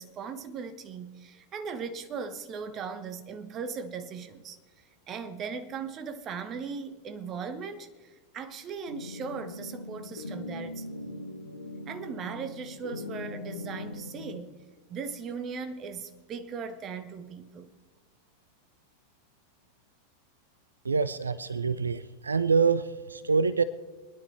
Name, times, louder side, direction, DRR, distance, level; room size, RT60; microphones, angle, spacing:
voice 1, 0.0-10.9 11.9-14.6 14.9-17.7, right 5 dB, 30° right, 1.0 m, -38 dB
sound 1, 8.9-14.4, left 2 dB, 80° left, 0.9 m, -40 dB
voice 2, 20.8-23.6, right 5 dB, 75° right, 0.4 m, -26 dB
25.5 x 10.0 x 3.3 m
figure-of-eight pair, 90°, 0 cm